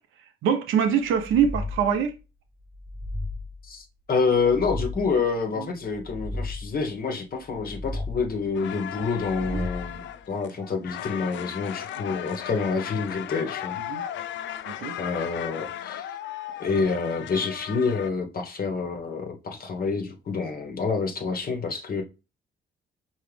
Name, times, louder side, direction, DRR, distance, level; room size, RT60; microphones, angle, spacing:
voice 1, 0.4-2.2 5.6-5.7 9.5-9.7 13.9-14.0 14.7-14.9, right 8 dB, 85° right, 1.0 m, -24 dB
sound 1, 1.1-2.1 2.6-3.7 4.2-5.3 5.8-6.9 7.4-8.5 9.1-10.2, left 2 dB, 30° right, 0.8 m, -35 dB
voice 2, 3.6-13.8 15.0-16.1 16.6-22.0, left 4 dB, 50° left, 1.4 m, -27 dB
sound 2, 8.5-18.1, left 11 dB, 70° left, 0.4 m, -36 dB
4.7 x 3.2 x 3.4 m
cardioid pair, 90°, 20 cm